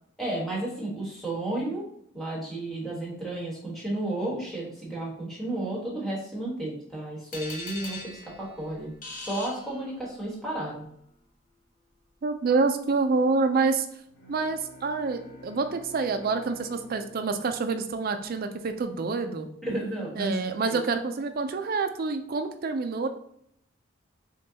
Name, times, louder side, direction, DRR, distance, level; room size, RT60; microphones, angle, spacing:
voice 1, 0.2-1.9 2.1-10.9 19.6-20.4 20.7-20.8, right 1 dB, ahead, -6 dB, 1.3 m, -32 dB
sound 1, 7.3-10.3, left 2 dB, 40° left, 0.8 m, -41 dB
voice 2, 12.2-13.9 14.3-19.5 20.2-23.1, right 4 dB, 45° right, 7 dB, 0.4 m, -27 dB
Bowed string instrument, 14.1-18.6, left 2 dB, 60° left, 1.2 m, -51 dB
6.3 x 2.2 x 2.8 m, 0.72 s
head